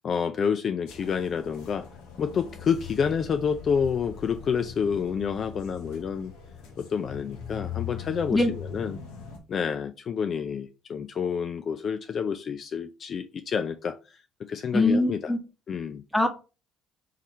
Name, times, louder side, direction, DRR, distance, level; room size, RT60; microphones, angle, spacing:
voice 1, 0.0-1.9 2.2-6.3 6.8-8.4 8.7-9.0 9.5-14.0 14.5-15.2 15.7-16.0, left 6 dB, 50° left, 0.3 m, -28 dB
sound 1, 0.9-9.4, left 7 dB, 75° left, 0.9 m, -41 dB
voice 2, 14.7-15.4 16.1-16.3, left 2 dB, 10° left, 1.1 m, -22 dB
3.8 x 3.1 x 4.1 m
hypercardioid pair, 60°, 0 cm